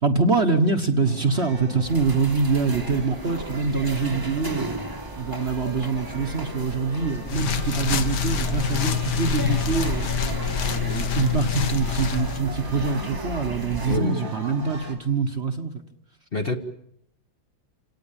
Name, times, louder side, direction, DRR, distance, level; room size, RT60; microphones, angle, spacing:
voice 1, 0.0-4.8 5.2-10.1 10.6-15.8, right 4 dB, 40° right, 6 dB, 1.4 m, -24 dB
sound 1, 1.0-14.9, right 3 dB, 90° right, 4.1 m, -40 dB
sound 2, 1.9-14.0, right 1 dB, 15° right, 1.2 m, -36 dB
sound 3, 7.2-12.4, left 7 dB, 65° left, 1.8 m, -26 dB
voice 2, 13.8-14.3 16.3-16.6, left 3 dB, 35° left, 7 dB, 1.4 m, -26 dB
27.5 x 18.0 x 8.7 m, 0.74 s
omnidirectional pair, 2.0 m